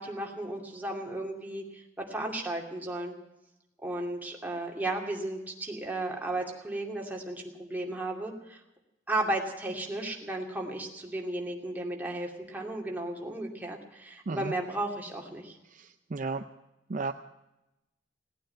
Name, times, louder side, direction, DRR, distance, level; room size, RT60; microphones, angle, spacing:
voice 1, 0.0-3.1 3.8-8.6 9.1-15.6, right 2 dB, 10° right, 0 dB, 2.5 m, -34 dB
voice 2, 16.1-16.4 16.9-17.1, right 3 dB, 45° right, 8 dB, 0.5 m, -32 dB
17.5 x 9.3 x 8.8 m, 0.95 s
head